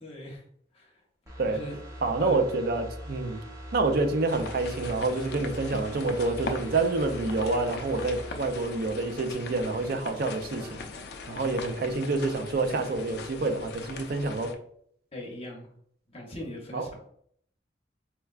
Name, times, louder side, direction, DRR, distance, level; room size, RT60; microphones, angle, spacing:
voice 1, 0.0-0.4 0.7-0.9 1.5-1.7 2.2-2.4 15.1-15.7 16.1-17.1, left 1 dB, 35° left, -1 dB, 0.8 m, -39 dB
sound 1, 1.3-9.9 10.3-10.4, equal, 20° right, 0.8 m, -43 dB
voice 2, 1.4-1.7 2.0-3.4 3.7-10.8 11.3-14.5 16.7-16.9, right 3 dB, 55° right, 7 dB, 0.4 m, -28 dB
sound 2, 4.3-14.6, left 3 dB, 65° left, 0.4 m, -40 dB
4.4 x 2.2 x 2.3 m, 0.65 s
head